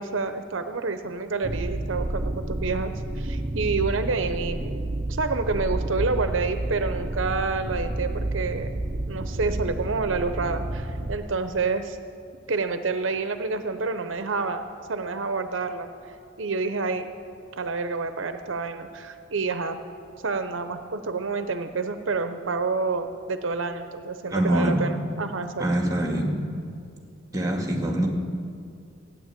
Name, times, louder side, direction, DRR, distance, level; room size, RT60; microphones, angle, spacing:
voice 1, 0.0-4.8 5.1-8.7 9.1-12.0 12.5-14.6 14.9-15.9 16.4-17.1 17.6-19.8 20.2-25.7, right 4 dB, 75° right, 9 dB, 0.8 m, -28 dB
sound 1, 1.4-11.2, right 1 dB, 35° right, 0.8 m, -30 dB
voice 2, 24.3-24.8 25.6-26.4 27.3-28.1, right 1 dB, 20° right, 2 dB, 1.8 m, -24 dB
15.5 x 9.9 x 8.3 m, 2.3 s
head